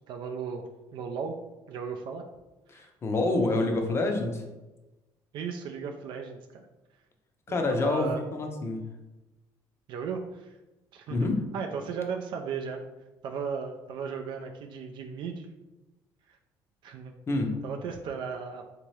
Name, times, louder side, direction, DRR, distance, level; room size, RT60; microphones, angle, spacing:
voice 1, 0.1-2.3 2.7-2.9 5.3-6.7 7.5-8.2 9.9-10.6 10.9-11.3 11.5-12.8 13.2-15.5 16.3-16.4 16.8-17.1 17.6-18.6, right 6 dB, 65° right, 4 dB, 0.3 m, -36 dB
voice 2, 2.7-4.4 7.5-8.8 11.1-11.4 17.3-17.5, left 2 dB, 30° left, 4 dB, 0.5 m, -27 dB
3.5 x 2.8 x 3.1 m, 1.1 s
cardioid pair, 125°, 9 cm